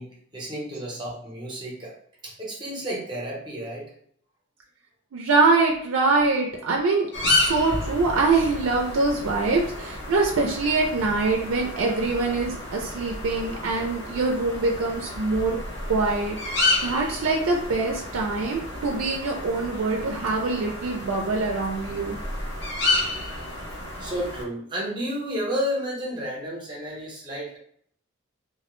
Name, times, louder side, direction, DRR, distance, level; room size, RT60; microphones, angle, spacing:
voice 1, 0.0-2.0 2.2-3.9 24.0-27.6, equal, 20° right, -4 dB, 0.7 m, -31 dB
voice 2, 5.1-15.6 15.9-22.2, right 3 dB, 85° right, 0 dB, 0.4 m, -24 dB
sound 1, 7.1-24.4, left 2 dB, 55° left, 0.7 m, -31 dB
2.1 x 2.0 x 3.0 m, 0.64 s
head